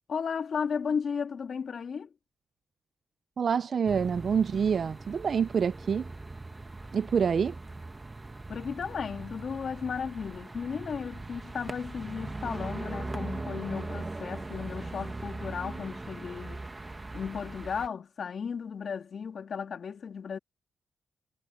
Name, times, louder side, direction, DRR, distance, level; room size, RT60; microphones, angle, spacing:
voice 1, 0.1-2.1 8.5-16.6 17.1-20.4, left 6 dB, 55° left, 2.9 m, -35 dB
voice 2, 3.4-6.1 6.9-7.5, right 6 dB, 50° right, 0.4 m, -27 dB
sound 1, 3.9-17.9, right 2 dB, 20° right, 1.2 m, -40 dB
wide cardioid pair, 135°, 0 cm